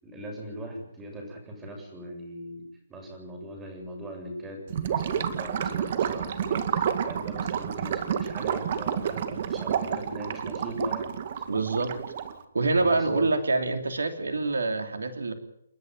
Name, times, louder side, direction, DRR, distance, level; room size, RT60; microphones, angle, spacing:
voice 1, 0.0-2.6 2.9-11.1 12.7-13.3, right 1 dB, 15° right, 1 dB, 7.5 m, -40 dB
Gurgling / Liquid, 4.7-12.4, right 8 dB, 45° right, 2.1 m, -30 dB
voice 2, 11.5-12.0 12.5-15.3, right 3 dB, 80° right, 8 dB, 2.9 m, -26 dB
30.0 x 10.5 x 9.5 m, 0.75 s
figure-of-eight pair, 145°, 0 cm